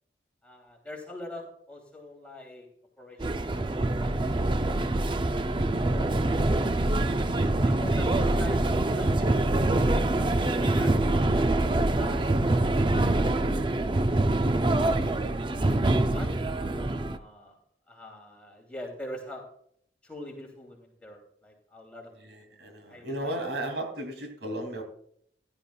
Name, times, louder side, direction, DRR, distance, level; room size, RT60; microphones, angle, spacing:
voice 1, 0.4-2.7 3.0-3.7 4.0-4.3 4.7-4.8 5.9-6.2 7.6-9.3 9.6-10.9 12.0-13.8 16.1-16.3 16.6-17.6 17.9-19.5 20.0-23.3, left 1 dB, 5° left, -1 dB, 2.9 m, -44 dB
sound 1, 3.2-17.2, right 2 dB, 25° right, 0.5 m, -25 dB
voice 2, 22.2-24.8, right 1 dB, 80° right, 4 dB, 2.7 m, -35 dB
15.5 x 11.0 x 2.3 m, 0.66 s
head